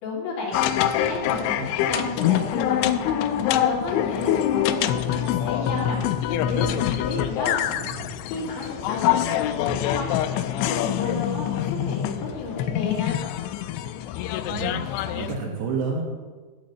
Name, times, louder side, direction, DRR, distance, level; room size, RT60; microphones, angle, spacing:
voice 1, 0.0-1.6 1.9-7.6 8.3-13.1, left 3 dB, 60° left, -5 dB, 5.4 m, -32 dB
sound 1, 0.5-15.3, left 11 dB, 90° left, 2.7 m, -25 dB
voice 2, 7.7-8.1 14.4-16.0, right 4 dB, 65° right, 0 dB, 3.3 m, -30 dB
14.0 x 6.4 x 7.8 m, 1.4 s
omnidirectional pair, 5.9 m